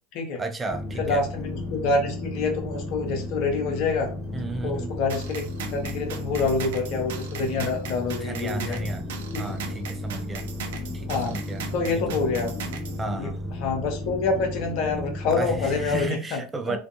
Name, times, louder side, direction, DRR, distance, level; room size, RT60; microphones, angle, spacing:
voice 1, 0.4-1.2 4.3-4.9 8.2-9.1 9.4-10.5 10.9-12.3 13.0-13.6 15.3-16.8, right 2 dB, 20° right, 0.5 m, -33 dB
sound 1, 0.7-16.1, left 2 dB, 10° left, 1.1 m, -34 dB
voice 2, 1.0-4.1 4.6-8.8 9.3-9.4 11.1-11.4 11.7-12.5 13.1-13.3 13.6-16.4 16.7-16.8, left 4 dB, 55° left, 0.8 m, -27 dB
sound 2, 5.1-13.0, right 7 dB, 75° right, 0.4 m, -39 dB
2.5 x 2.3 x 2.5 m
hypercardioid pair, 80°, 0 cm